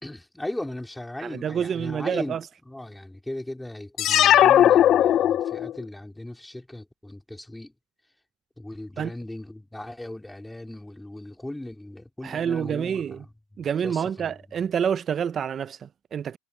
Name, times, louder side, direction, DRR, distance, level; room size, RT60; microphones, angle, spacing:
voice 1, 0.0-7.7 8.6-14.6, left 1 dB, 5° left, 4.0 m, -38 dB
voice 2, 1.2-2.4 9.0-9.1 12.2-13.2 13.6-16.4, right 8 dB, 25° right, 0.6 m, -28 dB
sound 1, 4.0-5.8, left 11 dB, 35° left, 0.5 m, -18 dB
supercardioid pair, 140°, 0 cm